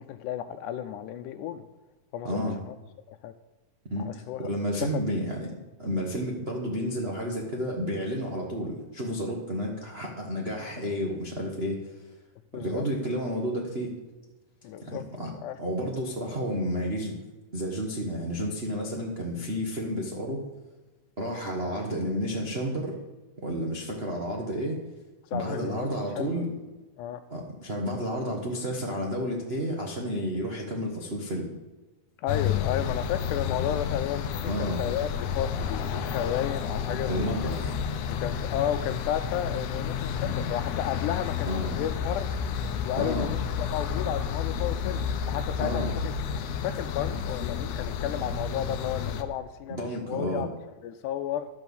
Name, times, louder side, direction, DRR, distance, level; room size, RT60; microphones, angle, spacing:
voice 1, 0.0-1.7 2.1-2.8 3.1-3.3 4.0-4.5 4.8-5.1 12.5-12.9 14.6-15.0 15.4-15.6 25.3-25.9 26.2-26.3 27.0-27.2 32.2-37.5 38.2-42.3 42.8-46.1 46.6-50.5 50.8-51.5, left 10 dB, 85° left, 7 dB, 2.1 m, -33 dB
voice 2, 2.2-2.6 3.9-4.1 4.4-5.5 5.8-11.9 12.5-14.0 14.8-15.3 15.6-17.2 17.5-20.4 21.2-23.0 23.4-24.8 25.3-26.5 27.3-31.5 34.4-34.8 37.1-37.7 40.2-40.5 41.5-41.8 42.9-43.3 45.6-45.9 49.7-50.4, equal, 80° right, -2 dB, 0.5 m, -31 dB
sound 1, 32.3-49.2, left 7 dB, 70° left, 1.7 m, -31 dB
11.5 x 6.2 x 7.1 m, 1.2 s
omnidirectional pair, 3.5 m